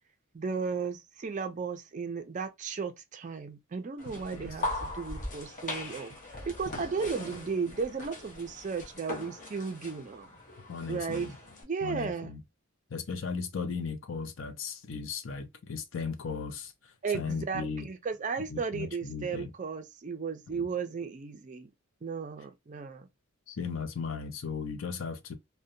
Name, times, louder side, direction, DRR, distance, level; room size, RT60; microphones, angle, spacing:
voice 1, 0.3-6.1 6.5-10.3 10.9-11.3 11.6-12.3 17.0-21.7 22.0-23.1, right 5 dB, 35° right, 0.4 m, -35 dB
sound 1, 4.0-11.6, left 2 dB, 35° left, 0.8 m, -40 dB
voice 2, 10.7-11.3 11.8-12.4 12.9-17.9 18.5-19.5 20.5-20.7 23.5-25.3, left 5 dB, 60° left, 0.5 m, -37 dB
2.6 x 2.1 x 2.5 m
head